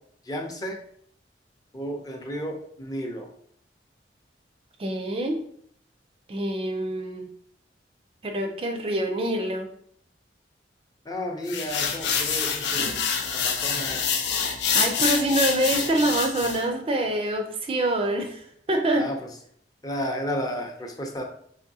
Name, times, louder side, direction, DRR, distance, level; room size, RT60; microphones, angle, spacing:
voice 1, 0.3-0.8 1.7-3.3 11.1-13.0 13.3-14.2 19.0-19.2 19.8-21.2, equal, 20° left, 2 dB, 0.5 m, -32 dB
voice 2, 4.8-5.4 6.3-7.3 8.2-9.7 12.8-12.9 14.7-19.1, right 1 dB, 30° right, 4 dB, 0.4 m, -26 dB
sound 1, 11.5-16.6, left 6 dB, 70° left, 0.5 m, -26 dB
3.5 x 3.2 x 2.7 m, 0.64 s
head